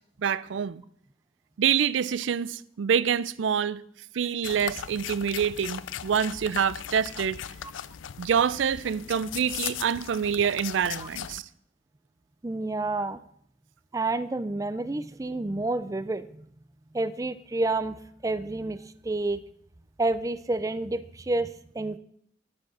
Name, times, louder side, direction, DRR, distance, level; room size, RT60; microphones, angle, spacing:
voice 1, 0.2-0.8 1.6-3.8 4.1-7.4 8.2-11.4, right 7 dB, 80° right, 0.4 m, -26 dB
sound 1, 4.4-11.4, left 10 dB, 85° left, 0.5 m, -38 dB
voice 2, 12.4-13.2 13.9-16.4 16.9-18.0 18.2-18.8 19.0-19.4 20.0-22.0, right 2 dB, 15° right, 0.4 m, -29 dB
10.5 x 7.3 x 6.1 m
head